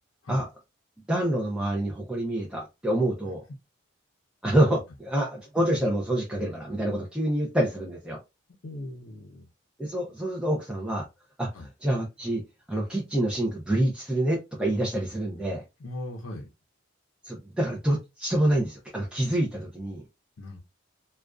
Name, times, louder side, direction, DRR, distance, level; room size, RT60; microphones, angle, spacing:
voice 1, 1.1-3.4 4.4-8.2 9.8-11.1 11.4-12.4 12.7-15.6 17.2-20.0, right 1 dB, 5° right, 0.5 m, -27 dB
voice 2, 8.6-9.5 11.5-11.7 15.8-16.5 20.4-20.6, left 1 dB, 70° left, 0.5 m, -38 dB
2.4 x 2.2 x 2.3 m
head